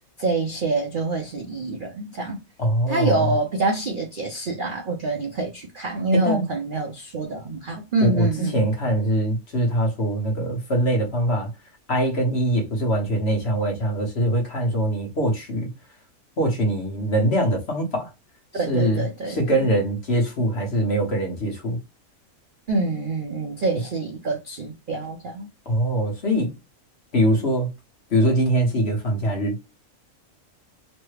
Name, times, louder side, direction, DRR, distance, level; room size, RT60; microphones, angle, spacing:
voice 1, 0.2-2.4 2.9-8.6 18.5-19.7 22.7-25.5, right 3 dB, 55° right, 0.5 m, -26 dB
voice 2, 2.6-3.3 6.2-6.5 8.0-11.5 11.9-15.7 16.4-18.1 18.7-21.8 25.7-26.5 27.1-27.7 28.1-29.6, right 1 dB, 50° left, 1.2 m, -23 dB
3.2 x 2.1 x 3.2 m
omnidirectional pair, 1.6 m